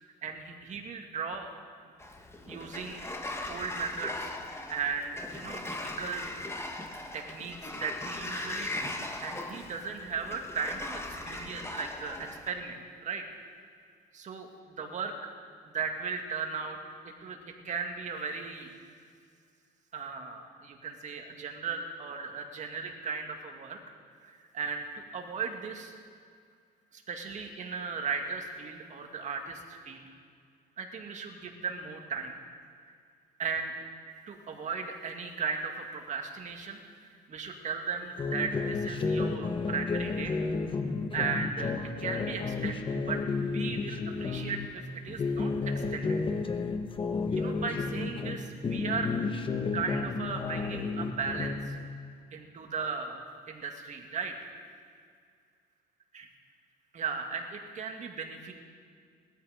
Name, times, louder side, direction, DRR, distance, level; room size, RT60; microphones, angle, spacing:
voice 1, 0.2-1.5 2.5-3.1 3.5-4.3 4.7-6.3 7.1-13.2 14.1-14.5 14.8-15.1 15.7-16.8 17.2-17.4 17.6-18.7 19.9-23.8 24.2-25.9 26.9-30.1 30.8-32.4 33.4-33.7 34.3-40.3 41.1-41.7 42.0-46.2 47.3-49.1 49.7-51.8 52.3-53.2 53.5-54.3 56.1-56.3 56.9-58.5, right 5 dB, 45° right, 3 dB, 2.1 m, -36 dB
Sliding door, 2.0-12.5, left 2 dB, 15° left, 1.6 m, -39 dB
sound 1, 38.2-44.7 45.1-48.4 48.6-51.8, left 4 dB, 30° left, 1.2 m, -32 dB
19.0 x 13.0 x 5.1 m, 2.2 s
cardioid pair, 110°, 17 cm